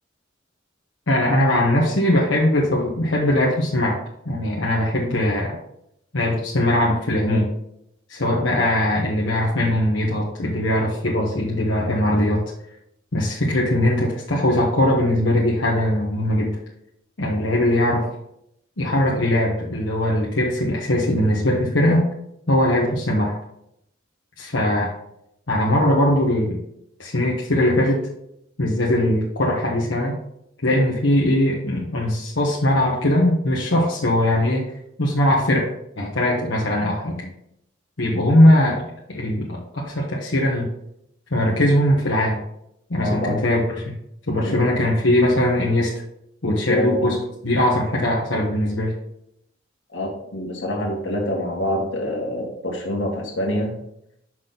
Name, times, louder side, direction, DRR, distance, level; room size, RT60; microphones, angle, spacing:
voice 1, 1.1-4.0 4.2-5.6 6.1-7.5 8.1-12.4 13.1-16.6 17.2-18.1 18.8-22.0 22.5-23.3 24.4-24.9 25.5-26.6 27.0-28.0 28.6-30.2 30.6-34.7 35.0-37.3 38.0-38.8 39.1-40.7 41.3-42.4 42.9-44.0 44.3-45.9 46.4-47.1 47.4-48.9, left 1 dB, 90° left, -3 dB, 1.3 m, -20 dB
voice 2, 43.0-43.4 44.4-44.6 46.5-47.2 49.9-53.8, left 1 dB, 70° left, 0 dB, 1.8 m, -26 dB
6.1 x 6.0 x 3.9 m, 0.77 s
head